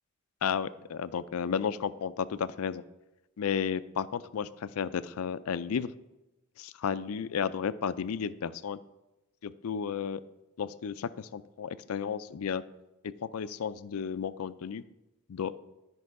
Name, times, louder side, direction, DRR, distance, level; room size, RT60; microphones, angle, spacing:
voice 1, 0.4-2.8 3.4-5.9 6.6-8.8 9.4-10.2 10.6-12.6 13.2-14.8 15.3-15.5, left 7 dB, 75° left, 15 dB, 0.4 m, -33 dB
11.5 x 5.4 x 4.7 m, 0.99 s
head